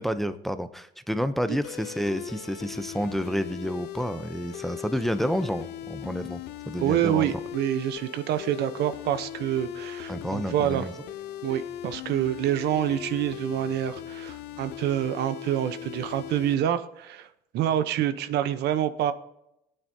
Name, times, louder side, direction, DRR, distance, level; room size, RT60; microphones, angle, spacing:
voice 1, 0.0-6.4 6.7-7.4 10.1-10.9, equal, ahead, 11 dB, 0.6 m, -29 dB
sound 1, 1.6-16.5, left 11 dB, 75° left, 0.7 m, -39 dB
voice 2, 6.8-10.8 11.4-17.3 17.5-19.1, right 11 dB, 80° right, 12 dB, 0.9 m, -27 dB
18.5 x 9.1 x 2.8 m, 0.83 s
cardioid pair, 110°, 17 cm